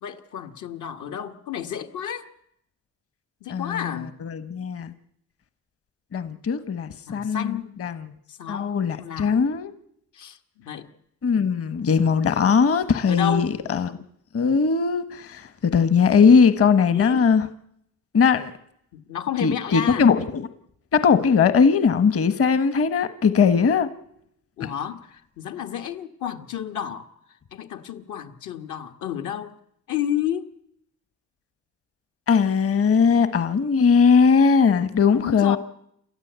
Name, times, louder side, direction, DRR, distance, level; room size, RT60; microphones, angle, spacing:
voice 1, 0.0-2.3 3.4-4.2 7.1-7.8 8.3-9.3 10.1-10.9 13.1-13.5 16.9-17.3 18.9-20.1 24.6-29.6 29.9-30.5 35.1-35.6, left 10 dB, 75° left, 1.8 m, -31 dB
voice 2, 3.5-4.9 6.1-8.1 8.5-9.7 11.2-14.0 14.3-17.5 18.1-18.5 19.4-20.5 20.9-23.9 24.6-24.7 32.3-35.6, left 6 dB, 50° left, 1.4 m, -20 dB
28.5 x 13.5 x 8.2 m
cardioid pair, 90°, 30 cm